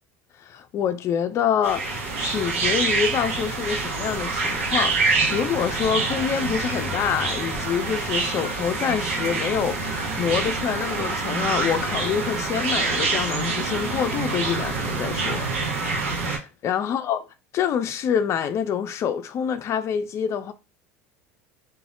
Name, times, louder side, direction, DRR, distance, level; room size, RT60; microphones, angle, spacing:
voice 1, 0.4-15.5 16.1-17.2 17.5-20.5, left 8 dB, 40° left, 0.3 m, -26 dB
sound 1, 1.6-16.4, right 3 dB, 80° right, 0.7 m, -26 dB
2.1 x 2.0 x 3.6 m
hypercardioid pair, 80°, 7 cm